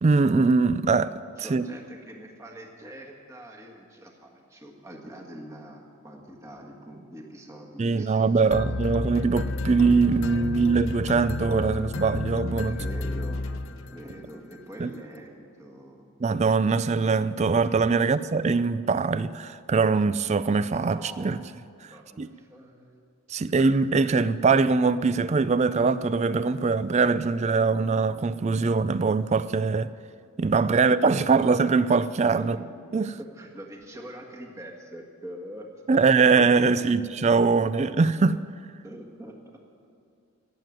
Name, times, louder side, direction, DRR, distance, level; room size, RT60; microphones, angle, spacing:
voice 1, 0.0-1.6 7.8-12.8 14.8-14.9 16.2-21.4 22.2-22.3 23.3-29.9 30.4-32.6 32.9-33.1 35.9-38.4, right 4 dB, 30° right, 0.3 m, -22 dB
voice 2, 1.4-9.0 12.7-13.5 13.9-16.1 18.0-18.1 20.9-21.5 21.9-23.0 23.3-23.5 32.3-36.7 37.7-37.8 38.8-39.6, right 1 dB, 15° right, 1.6 m, -44 dB
sound 1, 8.5-14.2, left 2 dB, 60° left, 0.7 m, -31 dB
17.0 x 7.6 x 9.3 m
head